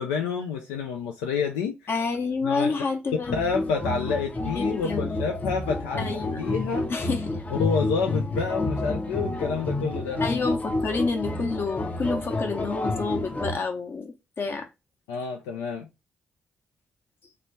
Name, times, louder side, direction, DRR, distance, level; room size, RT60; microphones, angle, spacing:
voice 1, 0.0-1.8 2.4-2.7 3.3-6.8 7.5-10.2 15.1-15.9, left 5 dB, 85° left, 0.4 m, -28 dB
voice 2, 1.9-3.3 4.5-5.1 6.0-6.5 6.9-7.4 10.2-14.7, left 4 dB, 55° left, 0.9 m, -29 dB
sound 1, 3.2-13.6, left 2 dB, 30° left, 0.6 m, -29 dB
3.0 x 2.2 x 3.9 m
hypercardioid pair, 40°, 5 cm